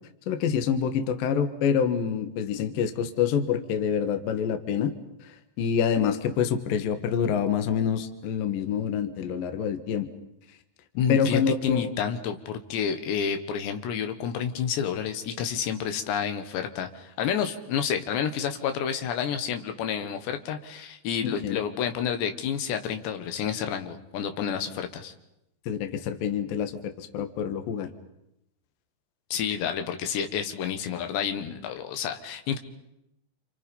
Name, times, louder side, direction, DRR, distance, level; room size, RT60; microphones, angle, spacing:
voice 1, 0.3-4.9 5.2-5.3 5.6-10.1 11.1-11.9 21.2-21.6 25.7-27.9, left 7 dB, 65° left, 8 dB, 2.8 m, -26 dB
voice 2, 11.0-25.1 29.3-32.6, left 8 dB, 80° left, 7 dB, 3.6 m, -29 dB
29.0 x 28.0 x 5.4 m, 0.84 s
omnidirectional pair, 5.1 m